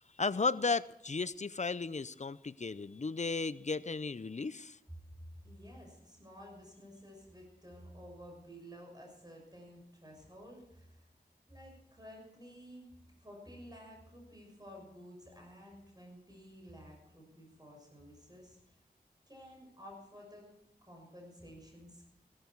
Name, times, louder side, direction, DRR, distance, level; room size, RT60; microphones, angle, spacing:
voice 1, 0.2-4.8, left 4 dB, 45° left, 17 dB, 0.5 m, -34 dB
voice 2, 5.4-11.1 11.5-18.8 19.3-20.5 20.8-22.1, equal, 25° right, 0 dB, 6.4 m, -53 dB
16.5 x 14.0 x 4.6 m, 0.80 s
wide cardioid pair, 50°, 17 cm